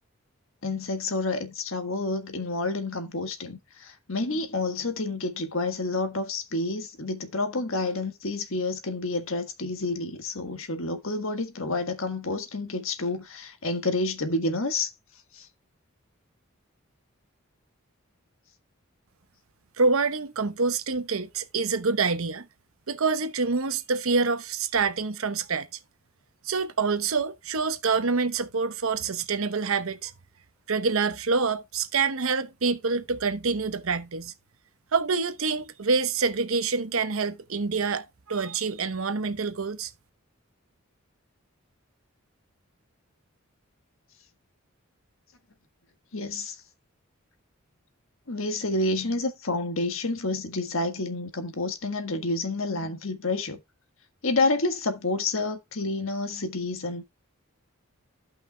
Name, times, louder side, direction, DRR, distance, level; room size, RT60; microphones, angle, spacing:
voice 1, 0.6-14.9 15.3-15.5 46.1-46.6 48.3-53.6 54.2-57.0, left 2 dB, 70° left, 1.6 m, -29 dB
voice 2, 19.8-22.5 22.9-25.7 26.4-30.1 30.7-34.3 34.9-39.9, right 4 dB, 70° right, 0.9 m, -26 dB
15.0 x 5.7 x 2.2 m
head